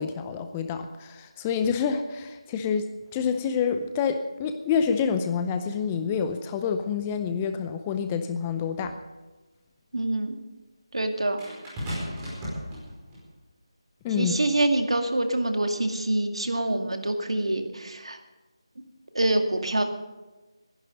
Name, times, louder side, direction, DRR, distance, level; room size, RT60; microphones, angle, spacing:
voice 1, 0.0-8.9 14.0-14.3, left 6 dB, 15° left, 8 dB, 0.6 m, -27 dB
voice 2, 9.9-10.4 10.9-11.4 14.2-18.2 19.1-19.8, right 1 dB, 75° right, 5 dB, 2.2 m, -25 dB
sound 1, 11.4-13.3 14.2-14.4, equal, 10° right, 4.8 m, -35 dB
21.0 x 11.0 x 5.2 m, 1.2 s
figure-of-eight pair, 165°, 3 cm